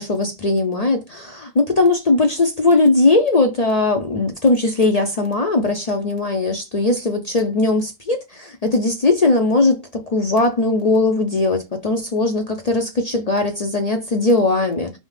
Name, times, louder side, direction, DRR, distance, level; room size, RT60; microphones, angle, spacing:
voice 1, 0.0-14.9, left 2 dB, 45° left, 0.5 m, -19 dB
5.3 x 2.2 x 3.2 m
omnidirectional pair, 1.3 m